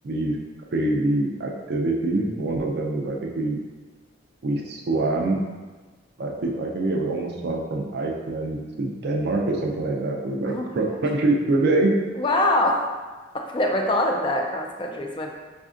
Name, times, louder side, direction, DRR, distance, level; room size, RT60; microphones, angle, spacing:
voice 1, 0.0-0.4 0.7-3.6 4.4-5.4 6.2-11.9, right 2 dB, 55° right, 0 dB, 0.4 m, -25 dB
voice 2, 10.4-11.0 12.2-12.8 13.3-15.3, left 1 dB, 25° left, 1 dB, 0.3 m, -24 dB
4.2 x 2.6 x 2.4 m, 1.3 s
head